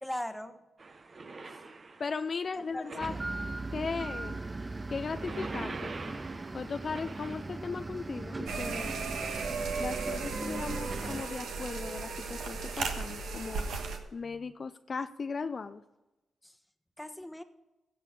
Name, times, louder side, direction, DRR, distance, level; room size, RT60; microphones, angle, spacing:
voice 1, 0.0-0.6 1.5-1.6 2.5-3.3 16.4-16.6 17.0-17.4, left 1 dB, 10° left, 9 dB, 1.2 m, -40 dB
sound 1, 0.8-3.9 4.9-12.9, right 3 dB, 45° right, 1.0 m, -47 dB
voice 2, 2.0-3.1 3.7-4.4 4.9-6.0 6.5-9.0 9.8-13.7 14.1-15.8, left 5 dB, 50° left, 10 dB, 0.5 m, -37 dB
sound 2, 3.0-11.2, right 2 dB, 30° right, 0.5 m, -39 dB
sound 3, 8.5-14.0, right 4 dB, 75° right, 1.3 m, -35 dB
15.5 x 6.7 x 5.4 m, 1.0 s
hypercardioid pair, 40°, 0 cm